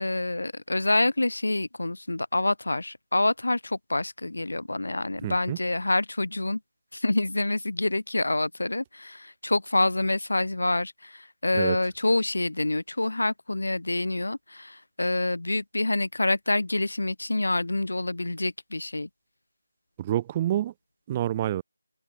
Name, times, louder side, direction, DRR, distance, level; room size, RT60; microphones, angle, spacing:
voice 1, 0.0-6.6 6.9-19.1, left 2 dB, 90° left, 2.8 m, -27 dB
voice 2, 5.2-5.6 11.5-11.8 20.0-20.7 21.1-21.6, right 12 dB, 15° right, 0.5 m, -27 dB
figure-of-eight pair, 175°, 0 cm